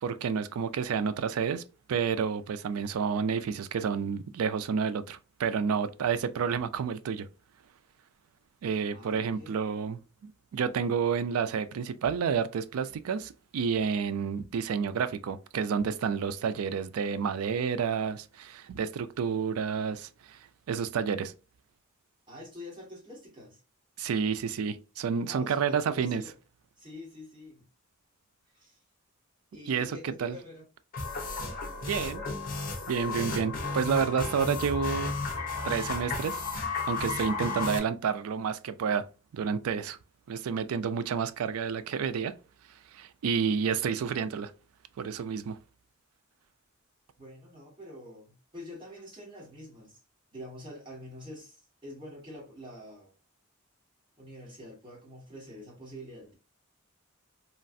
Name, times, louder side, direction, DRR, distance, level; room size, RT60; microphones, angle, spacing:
voice 1, 0.0-1.6 1.9-7.3 8.6-21.3 24.0-26.2 29.7-30.4 31.8-32.2 32.9-35.1 35.6-36.4 36.9-39.0 39.3-40.0 40.3-42.3 42.9-44.5 45.0-45.6, right 6 dB, 90° right, 0.4 m, -30 dB
voice 2, 8.9-9.6 22.3-23.6 25.2-26.3 26.8-27.6 28.5-28.8 29.5-30.6 47.2-50.0 50.3-53.1 54.2-56.3, equal, 25° right, 1.5 m, -46 dB
sound 1, 30.9-37.8, left 4 dB, 45° left, 0.7 m, -33 dB
3.1 x 2.4 x 2.5 m
head